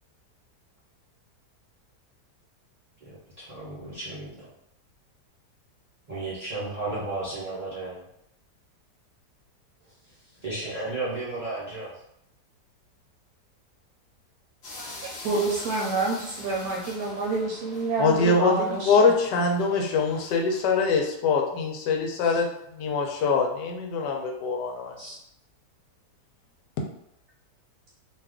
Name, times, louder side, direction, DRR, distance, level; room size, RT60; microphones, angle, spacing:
voice 1, 3.0-4.5 6.1-8.0 10.4-11.9 22.2-22.4 25.0-25.1, right 2 dB, 55° right, -8 dB, 0.4 m, -34 dB
sound 1, 14.6-21.0, left 2 dB, 60° left, 0.7 m, -43 dB
voice 2, 15.2-19.1, right 3 dB, 70° right, -2 dB, 1.0 m, -28 dB
voice 3, 18.0-24.9, left 4 dB, 90° left, 2 dB, 1.3 m, -24 dB
2.8 x 2.4 x 3.5 m, 0.77 s
omnidirectional pair, 1.8 m